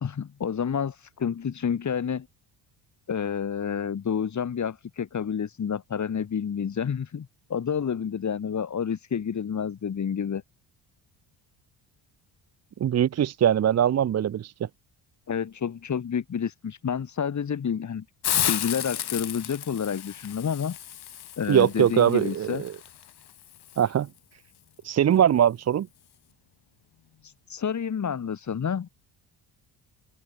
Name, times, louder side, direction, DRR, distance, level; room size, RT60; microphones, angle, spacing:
voice 1, 0.0-2.3 3.1-10.4 15.3-18.1 18.5-20.8 21.4-22.6 27.2-28.9, left 7 dB, 40° left, 2.3 m, -29 dB
voice 2, 12.8-14.5 21.5-22.7 23.8-24.1 24.8-25.9, right 10 dB, 35° right, 0.6 m, -22 dB
Hiss, 18.2-23.9, left 11 dB, 55° left, 2.6 m, -33 dB
open air
cardioid pair, 90°, 46 cm